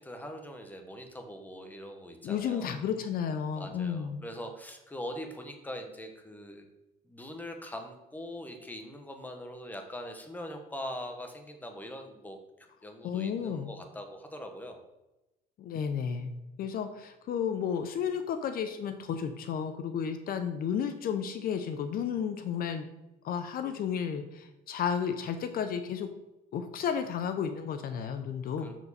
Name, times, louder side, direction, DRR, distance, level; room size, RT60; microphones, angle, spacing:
voice 1, 0.0-2.7 3.6-6.6 7.1-12.4 12.8-14.8 28.6-28.8, equal, 10° left, 4 dB, 1.3 m, -42 dB
voice 2, 2.2-4.2 13.0-13.7 15.6-16.3 16.6-22.9 23.2-26.1 26.5-28.8, left 7 dB, 60° left, 9 dB, 0.8 m, -32 dB
7.4 x 6.5 x 4.2 m, 0.98 s
cardioid pair, 110°, 17 cm